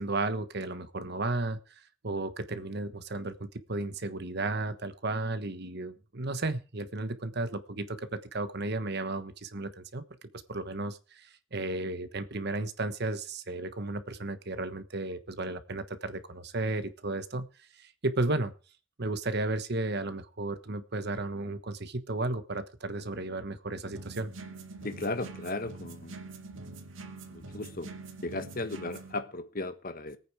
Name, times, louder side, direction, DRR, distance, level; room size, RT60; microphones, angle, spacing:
voice 1, 0.0-10.0 10.5-17.5 17.8-18.5 19.0-24.3, right 2 dB, 55° right, 1.3 m, -34 dB
sound 1, 23.9-29.1, right 3 dB, 80° right, 2.1 m, -45 dB
voice 2, 24.8-26.2 27.3-27.9 28.2-30.2, left 2 dB, 45° left, 1.4 m, -36 dB
20.0 x 9.0 x 4.9 m
head